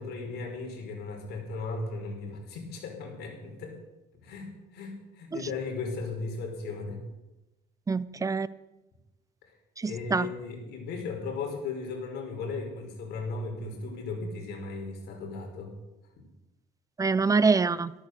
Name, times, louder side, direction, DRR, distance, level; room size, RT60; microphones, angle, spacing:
voice 1, 0.0-3.8 4.2-7.0 9.8-15.7 16.2-16.3, left 3 dB, 75° left, 2 dB, 5.2 m, -36 dB
voice 2, 7.9-8.5 9.8-10.3 17.0-17.9, right 4 dB, 20° right, 17 dB, 0.7 m, -25 dB
14.0 x 13.5 x 6.8 m, 0.99 s
cardioid pair, 110°, 17 cm